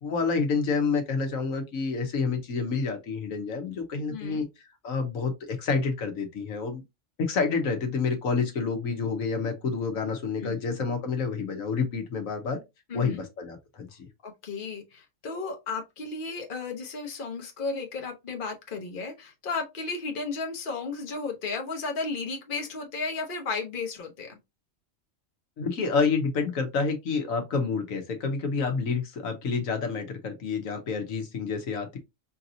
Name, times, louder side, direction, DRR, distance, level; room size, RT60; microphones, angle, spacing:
voice 1, 0.0-4.5 4.8-6.8 7.2-12.6 12.9-14.1 25.6-32.0, left 5 dB, 85° left, 1.4 m, -28 dB
voice 2, 4.1-4.4 10.4-10.6 12.9-13.3 14.2-24.4, left 4 dB, 45° left, 1.1 m, -34 dB
5.0 x 2.8 x 2.6 m
omnidirectional pair, 1.4 m